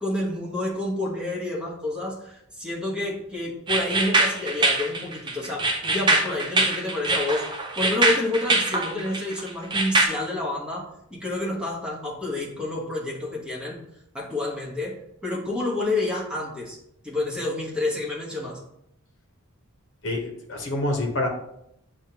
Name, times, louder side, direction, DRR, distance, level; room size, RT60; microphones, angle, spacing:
voice 1, 0.0-7.4 7.7-13.8 14.1-14.9 15.2-16.8 17.0-18.6, left 2 dB, 5° right, -4 dB, 1.0 m, -29 dB
sound 1, 3.7-10.1, right 2 dB, 20° right, 0.5 m, -23 dB
voice 2, 20.0-21.3, left 1 dB, 55° left, 1 dB, 1.0 m, -27 dB
7.1 x 2.4 x 2.8 m, 0.76 s
head